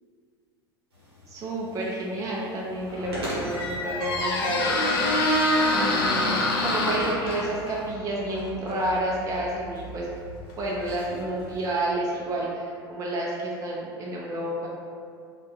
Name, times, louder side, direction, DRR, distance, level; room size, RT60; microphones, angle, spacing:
sound 1, 0.9-7.9, right 1 dB, 85° right, 0.8 m, -41 dB
voice 1, 1.3-4.7 5.7-10.1 10.6-14.7, right 1 dB, 25° right, -4 dB, 0.4 m, -30 dB
Squeak, 2.8-11.5, left 1 dB, 70° left, 0.4 m, -27 dB
2.3 x 2.2 x 2.8 m, 2.2 s
hypercardioid pair, 80°, 13 cm